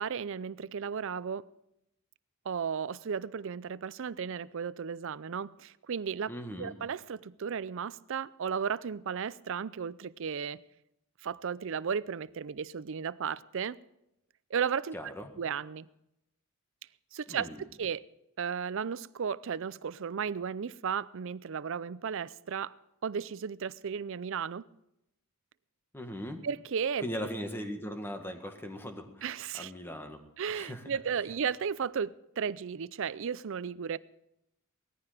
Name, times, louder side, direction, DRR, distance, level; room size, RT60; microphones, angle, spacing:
voice 1, 0.0-1.5 2.5-6.3 6.6-10.6 11.2-13.8 14.5-15.9 17.1-18.1 18.4-22.7 23.0-24.6 26.4-27.1 29.2-29.7 30.4-34.0, right 7 dB, 65° right, 0.5 m, -34 dB
voice 2, 6.3-6.7 14.9-15.3 17.3-17.6 25.9-26.4 27.0-29.3 29.5-30.2 30.5-31.0, equal, 10° left, 1.6 m, -39 dB
18.5 x 14.0 x 5.0 m
head